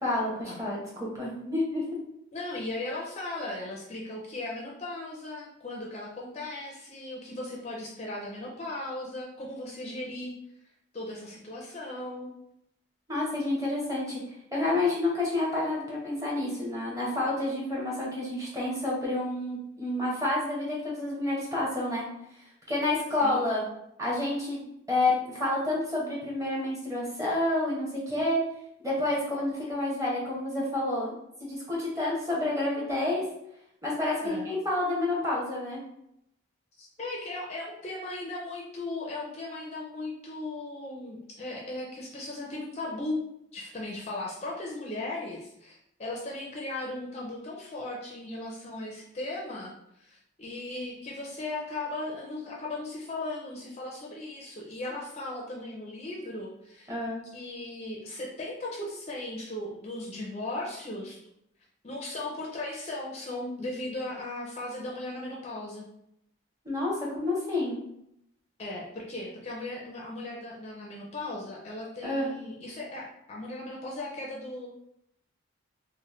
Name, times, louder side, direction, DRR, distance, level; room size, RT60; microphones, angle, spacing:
voice 1, 0.0-1.8 13.1-14.2 14.5-22.0 22.7-23.6 24.0-25.1 25.4-28.4 28.8-31.1 31.4-33.2 33.8-35.8 56.9-57.2 66.6-67.8 72.0-72.3, left 2 dB, 15° right, -5 dB, 0.8 m, -29 dB
voice 2, 2.3-10.3 10.9-12.3 23.2-23.4 34.2-34.5 36.8-43.2 43.5-56.9 57.3-61.2 61.8-65.9 68.6-74.7, left 2 dB, 30° left, -2 dB, 0.4 m, -37 dB
3.0 x 2.1 x 3.1 m, 0.77 s
head